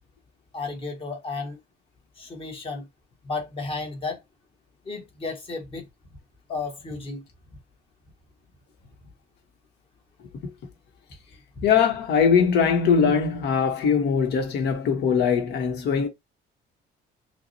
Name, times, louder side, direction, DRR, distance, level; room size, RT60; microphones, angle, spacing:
voice 1, 0.5-1.6 2.2-2.9 3.2-4.2 4.8-5.9 6.5-7.2 11.6-11.7, left 3 dB, 30° left, 1.1 m, -33 dB
voice 2, 11.6-16.1, left 6 dB, 65° left, 1.2 m, -21 dB
5.7 x 2.1 x 2.8 m
cardioid pair, 170°, 19 cm